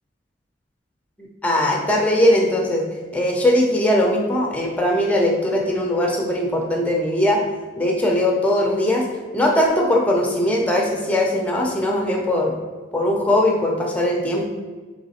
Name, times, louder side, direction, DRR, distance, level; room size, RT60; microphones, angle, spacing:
voice 1, 1.2-2.9 3.1-7.4 7.8-9.0 9.3-12.6 12.9-14.5, left 1 dB, 10° left, 0 dB, 0.6 m, -20 dB
4.0 x 3.2 x 4.2 m, 1.4 s
head